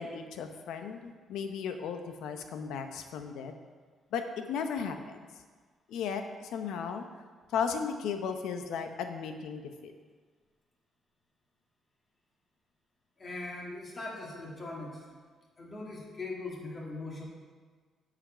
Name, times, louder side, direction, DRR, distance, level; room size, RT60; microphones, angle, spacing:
voice 1, 0.0-3.5 4.1-5.2 5.9-7.1 7.5-9.9, left 6 dB, 85° left, 7 dB, 0.7 m, -35 dB
voice 2, 13.2-15.0 15.6-17.2, left 2 dB, 35° left, -3 dB, 2.2 m, -40 dB
8.5 x 5.1 x 5.6 m, 1.6 s
cardioid pair, 90°, 0 cm